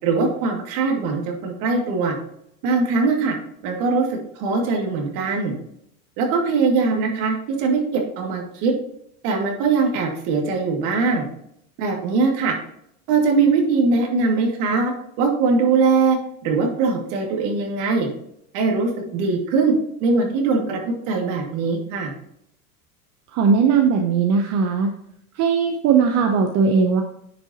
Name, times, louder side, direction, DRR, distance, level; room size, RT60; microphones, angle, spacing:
voice 1, 0.0-2.1 2.6-3.3 3.6-5.5 6.2-8.7 9.2-11.2 11.8-12.5 13.1-14.9 15.2-16.2 16.4-18.1 18.5-20.8 21.1-22.1, right 4 dB, 55° right, 1 dB, 2.5 m, -21 dB
voice 2, 23.3-24.9 25.3-27.0, right 5 dB, 40° right, 4 dB, 0.9 m, -18 dB
9.8 x 5.6 x 3.0 m, 0.74 s
supercardioid pair, 130°, 43 cm